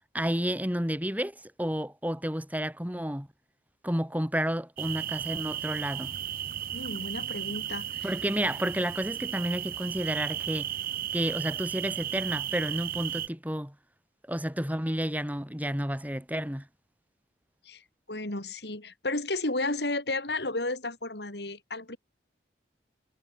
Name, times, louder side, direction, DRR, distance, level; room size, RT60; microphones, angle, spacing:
voice 1, 0.1-3.3 3.8-6.1 8.0-10.7 11.1-13.8 14.3-16.7, equal, 10° right, 5.2 m, -31 dB
sound 1, 4.8-13.3, right 11 dB, 50° right, 2.1 m, -35 dB
voice 2, 6.7-8.1 17.6-22.0, left 2 dB, 70° left, 4.2 m, -33 dB
head